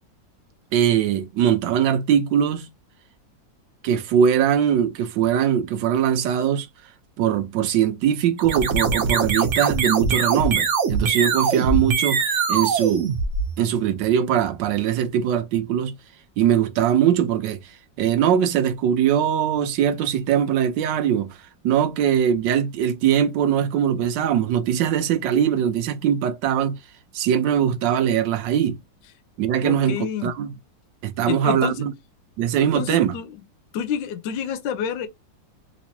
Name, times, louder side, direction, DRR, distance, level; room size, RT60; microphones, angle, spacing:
voice 1, 0.7-2.7 3.8-6.7 7.2-13.1 13.6-15.9 16.4-17.7 18.0-21.4 21.6-26.8 27.1-28.8 29.4-30.5 31.0-31.9 32.4-33.2, right 9 dB, 85° right, 1.3 m, -21 dB
sound 1, 8.4-13.9, right 5 dB, 50° right, 1.0 m, -22 dB
voice 2, 29.6-30.3 31.3-31.7 32.7-33.3 33.7-35.1, left 8 dB, 85° left, 1.3 m, -28 dB
3.4 x 3.0 x 2.8 m
omnidirectional pair, 1.9 m